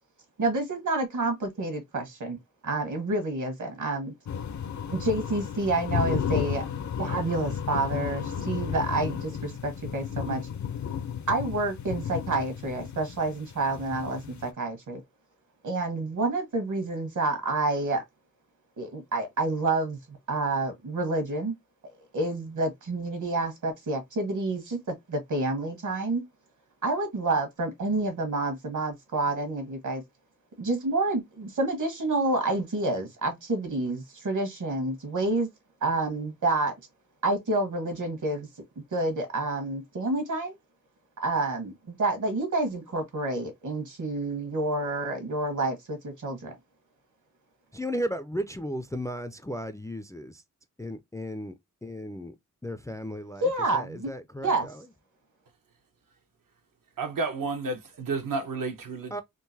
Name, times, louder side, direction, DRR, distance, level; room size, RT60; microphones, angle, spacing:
voice 1, 0.4-2.4 2.6-4.1 4.9-6.7 7.0-10.4 11.3-15.0 15.6-18.0 18.8-21.5 21.8-26.2 26.8-30.0 30.6-35.5 35.8-36.7 37.2-38.5 38.9-40.6 41.2-46.5 53.4-54.1 54.4-54.7, right 2 dB, 65° right, 1.3 m, -29 dB
sound 1, 4.3-14.5, left 8 dB, 60° left, 0.5 m, -33 dB
voice 2, 47.7-50.4 50.8-51.5 51.8-52.3 52.6-54.8 59.1-59.2, equal, 10° left, 0.3 m, -35 dB
voice 3, 57.0-59.2, right 3 dB, 80° right, 0.9 m, -31 dB
3.7 x 2.5 x 2.7 m
wide cardioid pair, 120°, 32 cm